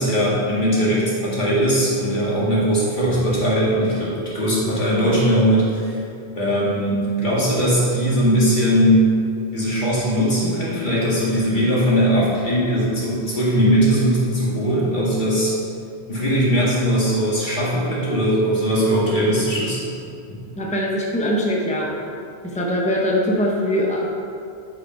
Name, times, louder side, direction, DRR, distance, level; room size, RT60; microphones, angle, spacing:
voice 1, 0.0-6.0 6.4-9.1 9.5-15.5 16.1-19.8 20.3-20.4, equal, 50° left, -8 dB, 2.3 m, -19 dB
voice 2, 20.6-21.9 22.4-24.1, equal, 5° left, -3 dB, 0.9 m, -22 dB
8.4 x 5.0 x 4.5 m, 2.5 s
omnidirectional pair, 1.0 m